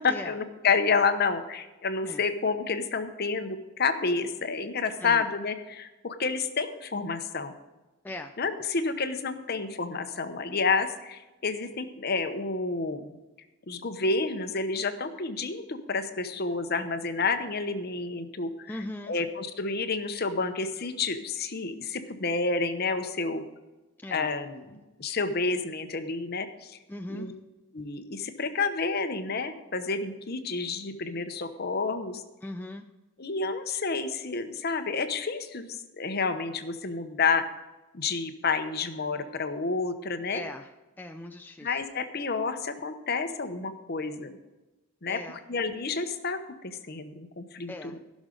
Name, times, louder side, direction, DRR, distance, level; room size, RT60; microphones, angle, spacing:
voice 1, 0.0-7.5 8.4-13.2 13.7-18.7 19.1-23.4 24.1-26.8 27.1-27.3 27.7-32.2 33.2-37.5 37.9-40.4 41.6-44.3 45.0-45.2 45.5-47.7, left 4 dB, 45° left, 9 dB, 0.8 m, -29 dB
voice 2, 8.0-8.3 18.7-19.2 24.0-24.3 26.9-27.4 32.4-32.8 40.3-41.8 45.1-45.4 47.7-48.0, left 1 dB, 10° left, 5 dB, 0.4 m, -39 dB
15.5 x 6.3 x 5.1 m, 1.1 s
head